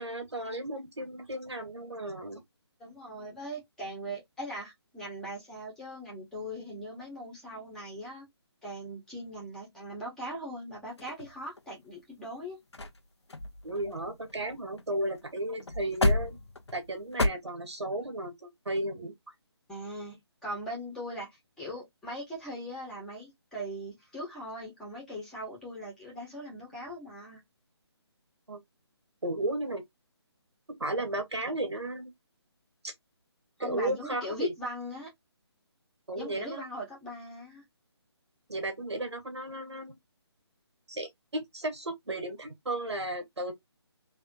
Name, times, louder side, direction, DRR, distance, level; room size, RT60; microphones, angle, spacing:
voice 1, 0.0-2.4 13.6-16.4 16.7-19.1 28.5-28.6 29.2-29.8 30.7-32.1 32.8-32.9 33.6-34.5 36.1-36.7 38.5-40.0 40.9-43.5, right 1 dB, 75° right, 2.1 m, -34 dB
voice 2, 2.8-8.3 8.6-12.6 19.7-27.4 33.6-35.1 36.2-37.6, equal, 5° left, 1.7 m, -40 dB
sound 1, 11.0-11.8 12.4-12.5 12.7-13.0 13.3-14.9 15.1-15.3 15.6-17.3, left 2 dB, 75° left, 0.9 m, -31 dB
3.4 x 3.4 x 3.0 m
figure-of-eight pair, 150°, 14 cm